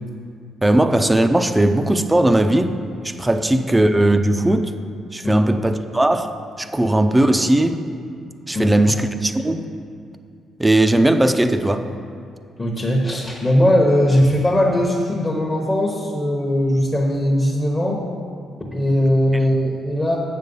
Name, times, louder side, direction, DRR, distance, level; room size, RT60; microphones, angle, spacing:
voice 1, 0.6-2.7 3.0-4.7 5.1-7.8 8.5-9.7 10.6-11.9, right 1 dB, 15° right, 8 dB, 0.5 m, -18 dB
voice 2, 12.6-18.1 18.6-20.2, equal, 20° left, -3 dB, 1.0 m, -19 dB
7.4 x 6.7 x 5.4 m, 2.3 s
cardioid pair, 90°, 0 cm